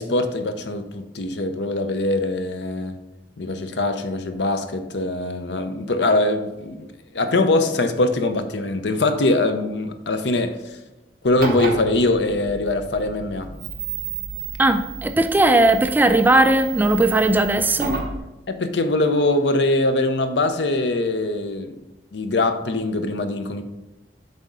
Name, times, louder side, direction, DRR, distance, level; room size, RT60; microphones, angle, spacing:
voice 1, 0.0-3.0 3.4-10.8 11.2-13.5 18.5-21.7 22.1-23.6, left 2 dB, 70° left, 0.7 m, -22 dB
sound 1, 11.2-18.2, right 4 dB, 55° right, 1.0 m, -32 dB
voice 2, 14.6-18.0, right 1 dB, 10° right, 0.3 m, -18 dB
7.6 x 3.7 x 5.4 m
head